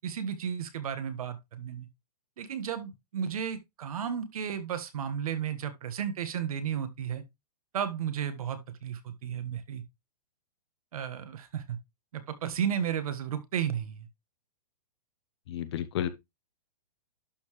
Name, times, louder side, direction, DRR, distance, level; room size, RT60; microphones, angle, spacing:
voice 1, 0.0-1.9 2.4-7.2 7.7-9.8 10.9-11.8 12.1-14.1, right 8 dB, 60° right, 1.6 m, -33 dB
voice 2, 15.5-16.1, left 10 dB, 40° left, 0.8 m, -31 dB
11.5 x 4.3 x 3.2 m
hypercardioid pair, 165°, 21 cm